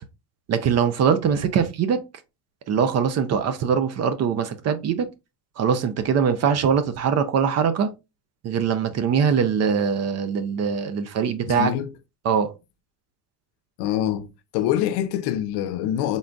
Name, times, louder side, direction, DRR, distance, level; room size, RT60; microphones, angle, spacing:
voice 1, 0.5-2.0 2.7-5.1 5.6-7.9 8.4-11.7 12.2-12.5, right 7 dB, 40° right, 0.6 m, -22 dB
voice 2, 11.4-11.9 13.8-14.3 14.5-16.2, left 11 dB, 90° left, 0.6 m, -25 dB
3.8 x 3.7 x 2.3 m
cardioid pair, 145°, 39 cm